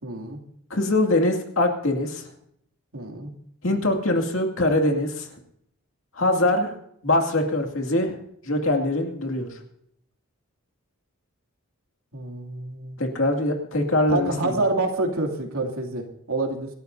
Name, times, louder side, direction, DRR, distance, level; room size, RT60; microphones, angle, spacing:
voice 1, 0.0-0.4 2.9-3.3 12.1-13.0 14.1-16.7, right 2 dB, 80° right, 2 dB, 2.9 m, -27 dB
voice 2, 0.7-2.2 3.6-5.3 6.2-6.7 7.0-8.1 8.4-9.5 13.0-14.5, left 1 dB, 65° left, 3 dB, 2.4 m, -23 dB
26.0 x 12.5 x 2.7 m, 0.70 s
head